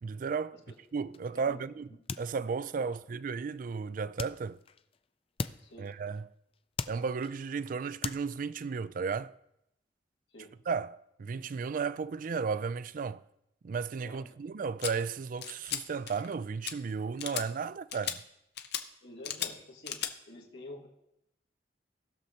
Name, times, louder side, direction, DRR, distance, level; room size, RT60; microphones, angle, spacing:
voice 1, 0.0-0.6 0.9-1.9 2.2-4.6 5.8-6.3 6.9-9.4 10.7-13.2 13.6-18.2, right 5 dB, 50° right, 0.3 m, -34 dB
sound 1, 0.6-1.6 1.9-3.0 4.2-5.1 5.4-6.3 6.5-7.6 8.0-8.8, left 5 dB, 35° left, 0.3 m, -41 dB
voice 2, 1.3-1.6 2.8-2.9 5.6-5.9 10.3-10.6 14.0-14.3 19.0-20.0 20.3-20.9, left 1 dB, 85° left, 2.0 m, -48 dB
sound 2, 14.8-14.9 15.4-15.8 16.1-16.3 16.6-16.7 17.2-17.4 17.9-18.2 18.6-18.8 19.2-19.5 19.8-20.1, left 10 dB, 65° left, 0.7 m, -35 dB
19.0 x 6.5 x 2.8 m
head